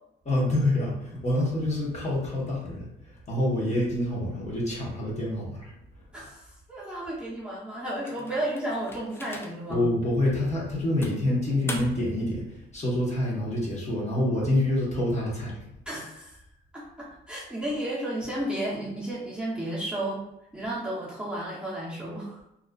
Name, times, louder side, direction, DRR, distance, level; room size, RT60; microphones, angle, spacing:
voice 1, 0.2-2.9 3.3-5.7 9.7-12.4 12.7-15.5, left 1 dB, 35° left, -5 dB, 0.9 m, -26 dB
voice 2, 6.7-9.8 15.9-16.4 16.7-20.2 20.5-22.4, right 1 dB, 5° right, -8 dB, 0.8 m, -33 dB
sound 1, 8.0-9.8 10.3-10.4 11.0-12.2, left 2 dB, 10° left, 0.3 m, -41 dB
2.4 x 2.3 x 2.2 m, 0.82 s
cardioid pair, 90°, 20 cm